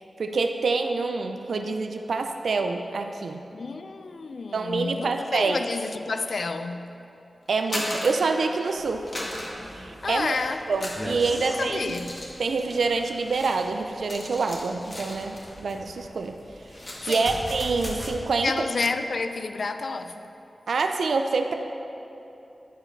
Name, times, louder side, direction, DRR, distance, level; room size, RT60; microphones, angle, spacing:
voice 1, 0.2-3.4 4.5-5.6 7.5-9.1 9.7-10.4 10.7-12.0 12.4-16.4 17.1-18.5 20.7-21.5, right 4 dB, 85° right, 0.4 m, -26 dB
voice 2, 3.5-6.9 10.0-10.7 11.3-12.2 17.0-17.4 18.4-20.3, left 3 dB, 70° left, 0.3 m, -30 dB
sound 1, 7.5-8.7 9.1-10.3 10.7-15.6 15.9-16.2 16.5-17.3, left 1 dB, 50° left, 1.7 m, -37 dB
sound 2, 8.8-18.1, equal, 20° left, 1.4 m, -42 dB
11.0 x 4.8 x 5.3 m
cardioid pair, 45°, 0 cm